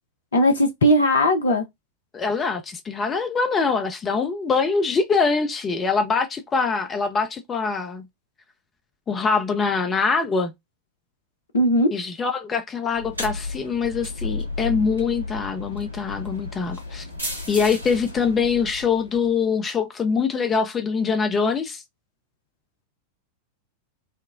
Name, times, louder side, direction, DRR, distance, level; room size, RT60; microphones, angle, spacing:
voice 1, 0.3-1.7 11.5-11.9, equal, 70° left, 0.5 m, -18 dB
voice 2, 2.1-8.0 9.1-10.5 11.9-17.1 17.5-21.8, left 5 dB, 20° left, 0.5 m, -23 dB
sound 1, 12.9-19.3, left 2 dB, 85° right, 1.5 m, -33 dB
4.3 x 2.1 x 2.3 m
figure-of-eight pair, 90°, 0 cm